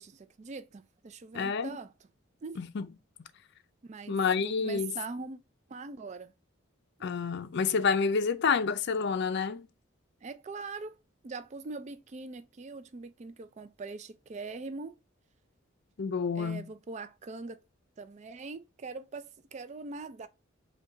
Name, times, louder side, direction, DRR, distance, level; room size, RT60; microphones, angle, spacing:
voice 1, 0.0-1.9 2.4-2.6 3.8-5.4 5.7-6.3 10.2-11.0 11.2-15.0 16.3-17.6 18.0-20.3, right 3 dB, 35° right, 0.4 m, -42 dB
voice 2, 1.3-1.8 2.6-2.9 4.1-4.9 7.0-9.7 16.0-16.6, left 5 dB, 55° left, 0.4 m, -29 dB
5.2 x 2.3 x 3.8 m
head